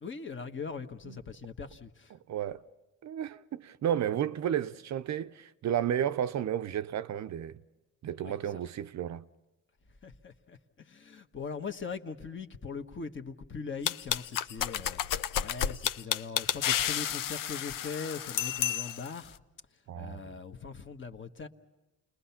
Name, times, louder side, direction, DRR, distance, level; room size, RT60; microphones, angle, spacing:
voice 1, 0.0-2.1 8.2-8.4 10.0-15.0 15.3-19.4 19.9-21.5, left 5 dB, 35° left, 1.3 m, -41 dB
voice 2, 2.1-2.6 3.0-7.6 8.0-9.3 19.9-20.2, right 10 dB, 50° right, 0.6 m, -32 dB
sound 1, 13.9-19.2, left 10 dB, 70° left, 0.8 m, -31 dB
29.5 x 20.5 x 5.8 m
cardioid pair, 110°, 34 cm